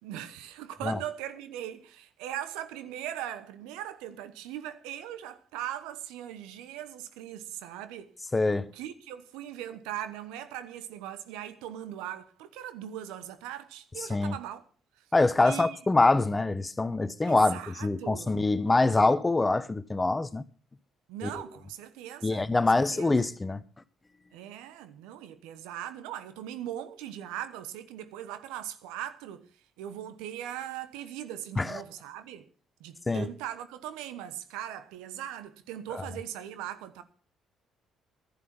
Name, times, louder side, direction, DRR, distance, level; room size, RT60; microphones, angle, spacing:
voice 1, 0.0-8.1 8.7-14.6 15.0-15.1 15.4-15.8 17.2-18.4 21.1-23.1 24.3-29.5 29.8-32.5 32.8-37.0, right 11 dB, 80° right, 1.0 m, -40 dB
voice 2, 8.3-8.7 14.1-14.3 15.1-20.4 21.2-21.3 22.2-23.6 31.6-31.8 33.1-33.2, left 2 dB, 20° left, 0.9 m, -25 dB
11.0 x 9.9 x 6.0 m
hypercardioid pair, 55°, 0 cm